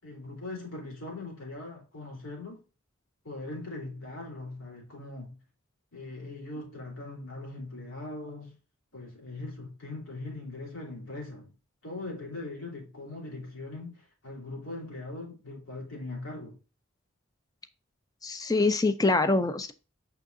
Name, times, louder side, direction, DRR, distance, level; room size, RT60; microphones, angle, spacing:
voice 1, 0.0-2.6 3.2-5.4 5.9-8.6 8.9-11.5 11.8-16.6, left 2 dB, 85° left, 3.6 m, -40 dB
voice 2, 18.2-19.7, left 3 dB, 20° left, 0.4 m, -25 dB
6.3 x 5.7 x 2.6 m
head